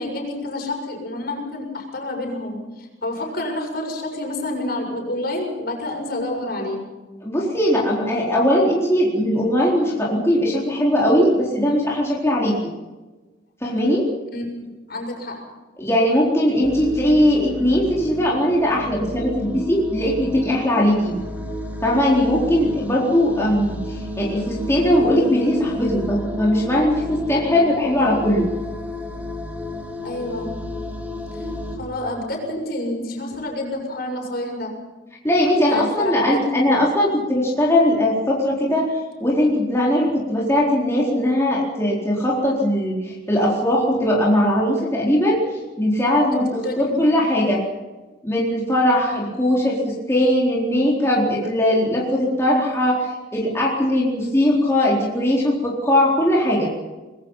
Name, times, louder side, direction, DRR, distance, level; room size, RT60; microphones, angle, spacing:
voice 1, 0.0-6.8 14.3-15.5 30.0-30.6 31.3-34.8 35.7-36.2 46.3-47.2, left 1 dB, 50° left, 1 dB, 6.8 m, -29 dB
voice 2, 7.2-12.5 13.6-14.1 15.8-21.1 21.8-28.5 35.2-47.6 48.2-56.7, left 1 dB, 15° left, -4 dB, 4.2 m, -20 dB
sound 1, 16.6-31.8, left 1 dB, 10° right, 3.2 m, -32 dB
24.5 x 22.0 x 5.7 m, 1.2 s
head